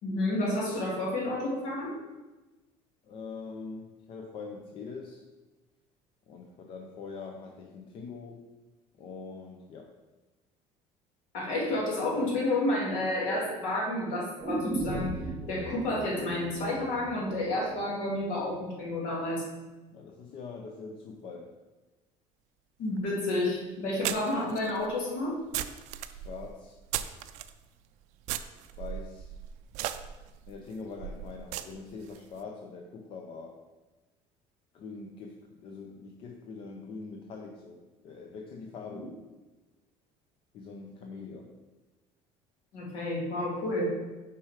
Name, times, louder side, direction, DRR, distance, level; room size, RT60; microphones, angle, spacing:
voice 1, 0.0-2.0 11.3-15.2 15.5-19.5 22.8-25.4 38.9-39.1 42.7-43.9, left 1 dB, 65° left, -3 dB, 2.3 m, -30 dB
voice 2, 3.1-5.2 6.3-8.5 9.0-9.9 19.9-21.5 26.1-26.8 28.8-29.3 30.5-33.6 34.7-39.2 40.5-41.5, left 4 dB, 40° left, 2 dB, 0.6 m, -43 dB
sound 1, 14.4-18.4 18.7-18.8, right 2 dB, ahead, 2.0 m, -37 dB
sound 2, 23.0-23.1 24.0-27.5 28.2-32.2, right 12 dB, 60° right, 0.4 m, -37 dB
6.4 x 4.6 x 4.9 m, 1.2 s
cardioid pair, 175°, 13 cm